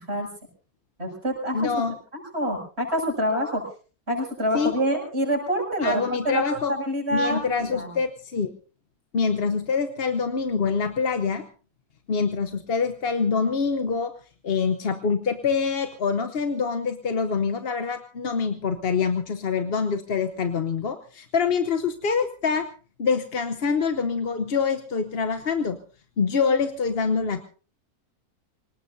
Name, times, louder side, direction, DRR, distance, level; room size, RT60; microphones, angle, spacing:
voice 1, 1.0-1.6 2.1-3.7 4.1-7.9, equal, 40° right, 0 dB, 7.4 m, -26 dB
voice 2, 1.5-1.9 4.5-4.7 5.8-6.7 7.1-8.5 9.1-11.4 12.1-14.1 14.4-22.7 23.0-25.8 26.2-27.4, left 5 dB, 45° left, 8 dB, 1.0 m, -25 dB
25.5 x 19.0 x 2.7 m, 0.37 s
omnidirectional pair, 1.6 m